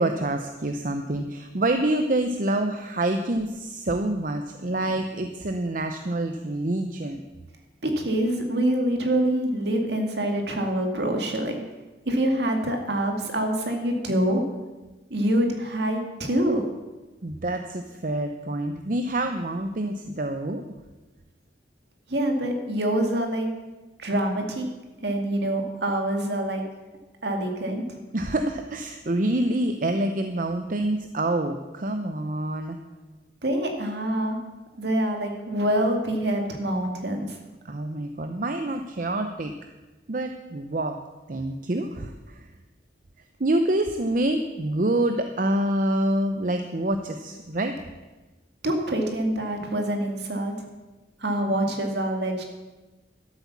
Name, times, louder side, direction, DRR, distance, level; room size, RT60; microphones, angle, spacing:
voice 1, 0.0-7.2 17.2-20.6 28.1-32.8 37.6-39.5 40.1-41.0 41.3-42.5 43.4-47.7, right 1 dB, 45° right, 6 dB, 0.7 m, -27 dB
voice 2, 7.8-11.6 12.1-14.4 15.1-16.6 22.1-23.5 24.0-24.7 25.0-26.6 27.2-28.0 33.4-34.4 34.8-37.4 48.6-50.5 51.2-52.4, right 1 dB, 65° right, 3 dB, 2.1 m, -25 dB
12.0 x 8.2 x 7.2 m, 1.2 s
head